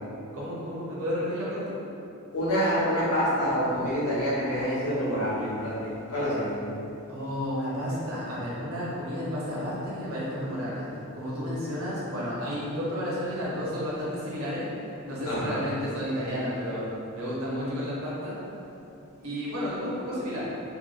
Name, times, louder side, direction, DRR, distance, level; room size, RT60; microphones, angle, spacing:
voice 1, 0.3-1.7 7.1-10.8 11.1-14.7 15.0-18.3 19.2-20.5, equal, 70° right, -7 dB, 0.9 m, -32 dB
voice 2, 2.3-6.6 15.3-15.6, equal, 85° left, -8 dB, 1.0 m, -27 dB
3.8 x 2.4 x 2.4 m, 2.8 s
head